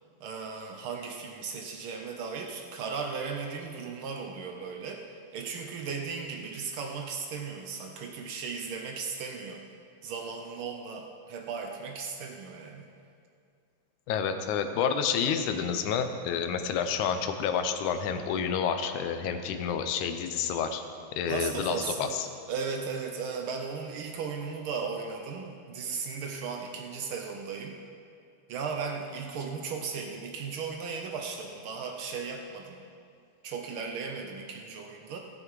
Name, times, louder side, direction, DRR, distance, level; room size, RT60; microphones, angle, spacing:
voice 1, 0.2-9.6 10.0-12.9 21.3-22.1 22.5-27.8 28.5-32.8 33.4-35.2, right 5 dB, 85° right, 2 dB, 1.1 m, -36 dB
voice 2, 14.1-20.8 21.1-22.3, left 7 dB, 85° left, 7 dB, 2.2 m, -29 dB
18.5 x 7.5 x 4.8 m, 2.4 s
omnidirectional pair, 3.4 m